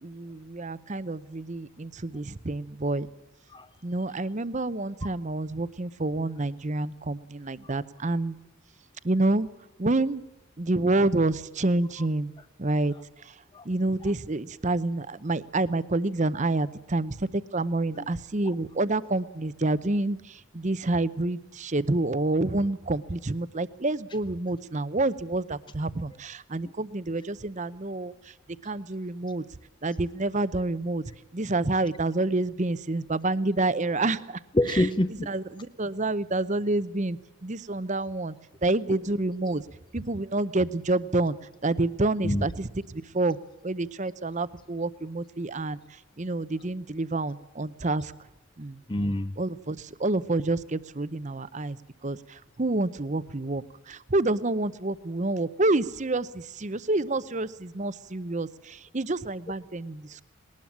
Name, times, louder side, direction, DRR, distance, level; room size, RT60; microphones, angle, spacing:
voice 1, 0.0-3.1 3.8-8.4 9.0-9.5 9.8-10.2 10.6-12.3 12.6-12.9 13.6-28.1 28.6-29.4 29.8-31.0 31.3-34.4 34.7-34.8 35.3-38.3 38.6-39.6 39.9-41.4 41.6-43.4 43.6-45.8 46.2-48.1 48.6-48.8 49.4-51.8 52.0-60.2, right 2 dB, 35° right, 15 dB, 0.7 m, -28 dB
voice 2, 34.5-35.3 42.2-42.5 48.9-49.4, left 1 dB, 20° left, 11 dB, 0.6 m, -27 dB
20.0 x 19.5 x 7.4 m, 0.96 s
head